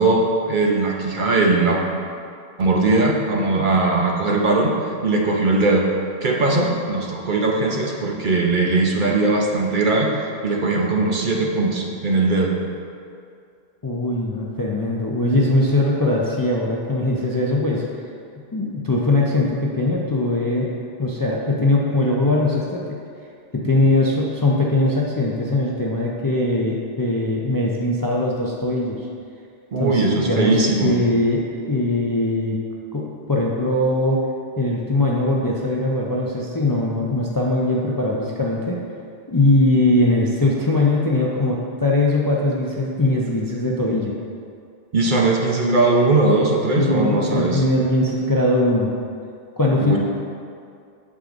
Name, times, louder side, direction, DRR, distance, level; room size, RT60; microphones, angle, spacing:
voice 1, 0.0-1.8 2.6-4.7 5.0-5.9 6.2-12.5 23.6-23.7 29.7-30.9 44.9-47.6 49.8-50.0, right 3 dB, 50° right, -1 dB, 0.9 m, -19 dB
voice 2, 13.8-17.8 18.5-20.7 21.0-23.0 23.5-29.0 29.8-32.6 32.9-34.2 34.6-38.8 39.3-44.1 46.7-48.9 49.6-50.0, left 2 dB, 25° left, -3 dB, 0.5 m, -21 dB
8.3 x 7.4 x 2.5 m, 2.3 s
omnidirectional pair, 1.1 m